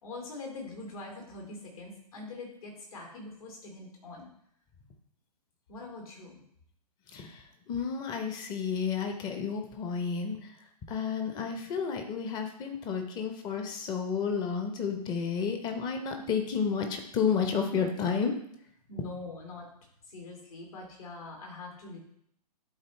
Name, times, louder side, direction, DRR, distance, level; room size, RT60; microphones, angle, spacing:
voice 1, 0.0-4.3 5.7-6.4 18.9-19.7 20.1-22.0, left 3 dB, 60° left, 0 dB, 2.9 m, -43 dB
voice 2, 7.1-10.6 10.9-18.3, left 6 dB, 20° left, 5 dB, 0.9 m, -31 dB
11.0 x 4.2 x 3.2 m, 0.71 s
figure-of-eight pair, 125°, 21 cm